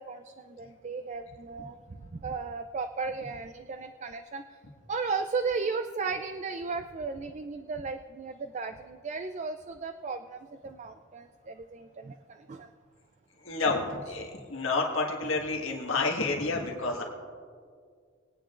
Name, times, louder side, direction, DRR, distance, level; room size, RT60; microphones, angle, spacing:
voice 1, 0.0-1.7 2.1-4.4 4.9-12.7 13.9-14.0, right 4 dB, 35° right, 8 dB, 0.3 m, -35 dB
voice 2, 13.4-17.0, left 3 dB, 75° left, 0 dB, 1.7 m, -29 dB
22.0 x 9.3 x 2.5 m, 2.1 s
head